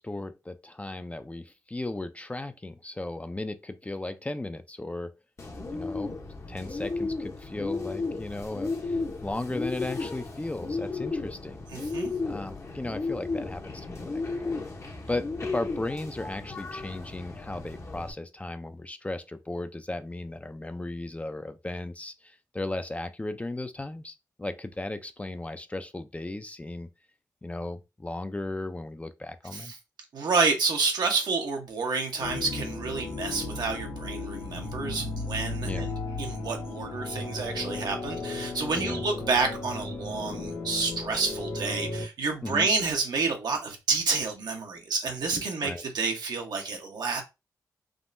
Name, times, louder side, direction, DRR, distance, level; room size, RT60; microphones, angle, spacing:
voice 1, 0.0-5.1 5.7-6.1 6.5-11.6 12.2-14.6 15.1-26.9 27.4-29.7 35.6-35.9 38.8-39.0 42.4-42.7 45.6-45.8, left 2 dB, 20° left, 0.4 m, -36 dB
Bird, 5.4-18.1, left 3 dB, 40° left, 0.8 m, -34 dB
voice 2, 11.7-12.1 29.5-29.8 30.1-47.2, right 4 dB, 70° right, 0.8 m, -29 dB
sound 1, 32.2-42.1, left 3 dB, 80° left, 1.1 m, -35 dB
3.5 x 2.0 x 2.5 m
supercardioid pair, 45°, 7 cm